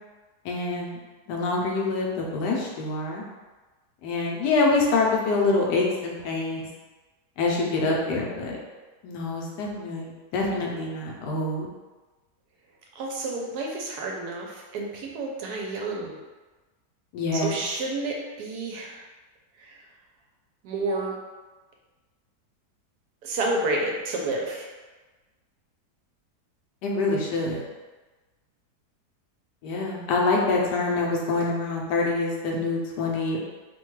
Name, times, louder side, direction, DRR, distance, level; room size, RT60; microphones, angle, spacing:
voice 1, 0.4-1.0 1.3-3.2 4.0-6.6 7.4-8.6 9.0-11.7 17.1-17.6 26.8-27.6 29.6-33.4, left 3 dB, 85° left, -2 dB, 1.2 m, -25 dB
voice 2, 12.9-16.2 17.4-19.0 19.6-19.8 20.6-21.2 23.2-24.7, right 2 dB, 80° right, -1 dB, 1.1 m, -30 dB
3.0 x 2.2 x 3.0 m, 1.2 s
omnidirectional pair, 1.7 m